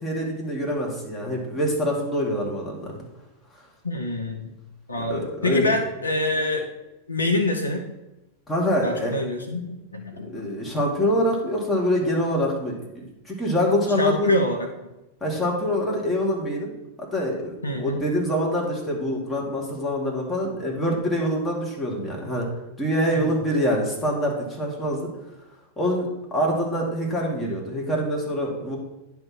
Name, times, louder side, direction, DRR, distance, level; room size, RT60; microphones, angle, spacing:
voice 1, 0.0-3.0 5.0-5.6 8.5-9.1 10.3-14.3 15.2-16.7 17.1-22.5 22.8-25.1 25.8-28.8, equal, 10° left, -3 dB, 2.2 m, -25 dB
voice 2, 3.8-4.5 4.9-6.7 7.1-7.9 8.8-10.5 14.0-14.9 17.6-18.0 23.1-23.3, left 1 dB, 80° left, 3 dB, 1.0 m, -26 dB
10.5 x 3.5 x 6.1 m, 0.97 s
figure-of-eight pair, 90°, 0 cm